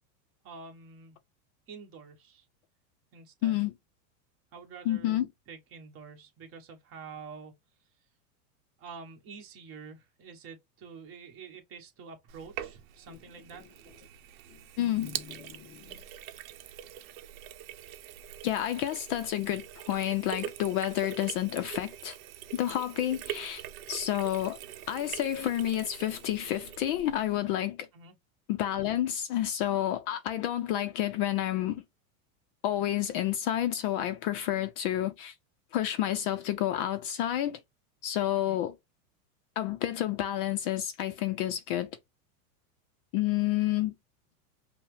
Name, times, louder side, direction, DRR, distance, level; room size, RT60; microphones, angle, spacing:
voice 1, 0.4-1.2 1.7-2.5 3.1-3.6 4.5-7.5 8.8-13.6 27.9-28.2 38.3-38.6, right 5 dB, 30° right, 1.2 m, -47 dB
voice 2, 3.4-3.7 4.9-5.3 14.8-16.0 18.4-22.2 22.5-23.6 23.9-24.6 24.9-27.9 28.5-31.8 32.6-35.3 35.7-37.6 38.0-38.7 39.6-41.9 43.1-43.9, left 12 dB, 40° left, 0.4 m, -30 dB
Sink (filling or washing), 12.3-27.4, right 11 dB, 65° right, 0.8 m, -43 dB
5.4 x 2.1 x 3.2 m
supercardioid pair, 145°, 43 cm